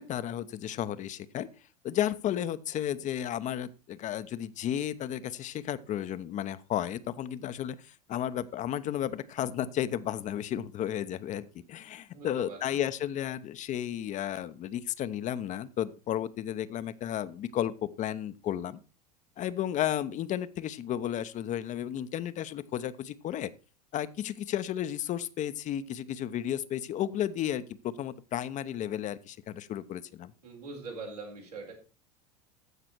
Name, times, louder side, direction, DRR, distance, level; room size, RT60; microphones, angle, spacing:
voice 1, 0.0-1.5 1.8-18.8 19.4-23.5 23.9-30.3, left 11 dB, 40° left, 13 dB, 0.8 m, -33 dB
voice 2, 12.1-12.7 30.4-31.7, right 4 dB, 80° right, -1 dB, 4.5 m, -42 dB
15.0 x 6.0 x 4.5 m, 0.32 s
figure-of-eight pair, 75°, 20 cm